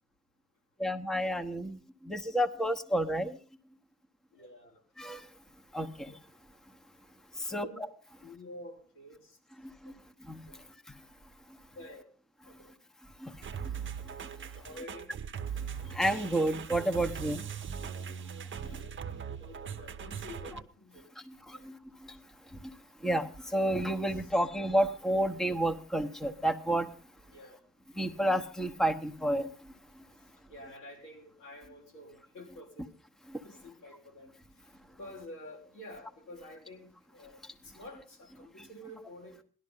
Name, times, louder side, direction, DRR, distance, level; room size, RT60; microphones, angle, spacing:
voice 1, 0.8-1.8 2.1-3.3 5.0-5.2 5.7-6.1 7.5-7.9 10.3-10.4 13.2-13.3 15.9-17.4 23.0-26.9 28.0-29.5, right 1 dB, ahead, 8 dB, 1.1 m, -30 dB
voice 2, 4.3-4.8 7.5-7.8 8.2-9.4 10.5-10.6 11.8-12.1 12.5-12.7 14.6-15.1 18.5-21.1 21.5-21.7 24.1-24.3 27.3-27.6 30.5-32.9 33.4-34.3 35.0-39.4, left 1 dB, 85° left, 0 dB, 5.5 m, -49 dB
sound 1, 13.4-20.6, right 7 dB, 40° right, 0.9 m, -40 dB
17.0 x 12.0 x 5.5 m, 0.41 s
cardioid pair, 90°, 30 cm